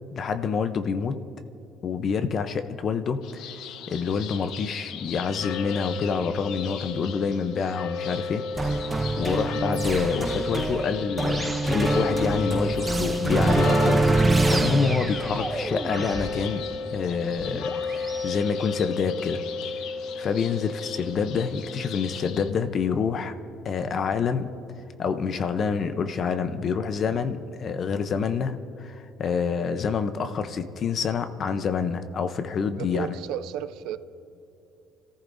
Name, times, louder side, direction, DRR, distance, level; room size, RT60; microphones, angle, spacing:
voice 1, 0.1-1.2 1.8-3.4 3.9-8.8 9.2-16.6 16.9-19.4 20.2-23.3 23.6-24.5 25.0-33.1, left 6 dB, 35° left, 9 dB, 0.7 m, -27 dB
sound 1, 3.2-22.5, left 5 dB, 65° left, 0.8 m, -33 dB
sound 2, 8.6-18.3, right 2 dB, 10° right, 0.6 m, -26 dB
voice 2, 32.8-34.0, right 10 dB, 75° right, 12 dB, 0.5 m, -33 dB
29.5 x 14.5 x 2.6 m, 2.8 s
cardioid pair, 165°, 0 cm